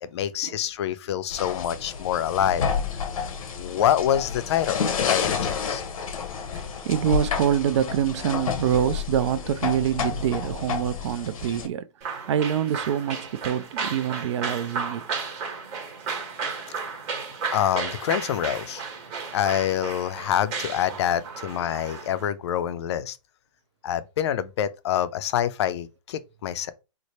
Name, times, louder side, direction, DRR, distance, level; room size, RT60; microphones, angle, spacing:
voice 1, 0.0-2.6 3.6-5.8 16.8-17.0 17.5-18.8 19.3-23.2 23.8-26.7, left 10 dB, 55° left, 0.4 m, -26 dB
sound 1, 1.3-11.7, left 6 dB, 80° left, 0.8 m, -30 dB
voice 2, 6.4-15.1 21.3-21.5, right 9 dB, 55° right, 0.4 m, -26 dB
sound 2, 12.0-22.3, right 5 dB, 35° right, 1.3 m, -34 dB
3.3 x 2.0 x 4.1 m
hypercardioid pair, 150°, 18 cm